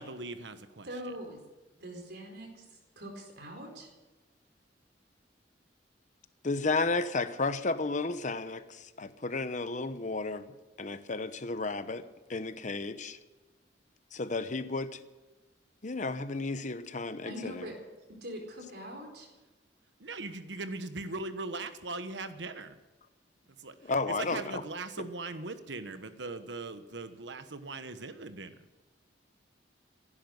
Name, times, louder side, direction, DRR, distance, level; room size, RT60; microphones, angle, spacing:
voice 1, 0.0-0.9 20.0-22.8 23.6-23.7 24.2-28.5, right 3 dB, 80° right, 10 dB, 1.2 m, -39 dB
voice 2, 0.8-1.4 1.8-2.6 3.0-3.9 17.2-17.8 18.2-19.3, equal, 65° right, 2 dB, 4.5 m, -42 dB
voice 3, 6.4-10.5 10.8-12.0 12.3-13.2 14.1-15.0 15.8-17.7 23.8-24.6 25.0-25.1, left 3 dB, 45° left, 12 dB, 0.9 m, -33 dB
16.0 x 11.5 x 7.9 m, 1.2 s
head